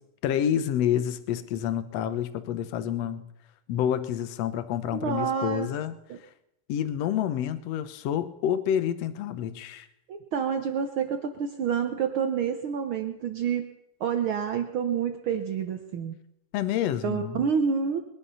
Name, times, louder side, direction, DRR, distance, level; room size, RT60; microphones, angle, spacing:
voice 1, 0.2-3.2 3.7-6.0 6.7-9.9 16.5-17.4, left 10 dB, 65° left, 12 dB, 1.8 m, -28 dB
voice 2, 4.9-5.7 6.1-6.2 10.1-13.7 14.0-16.1 17.0-18.0, right 7 dB, 85° right, 7 dB, 1.1 m, -28 dB
21.5 x 11.0 x 5.6 m, 0.85 s
omnidirectional pair, 3.6 m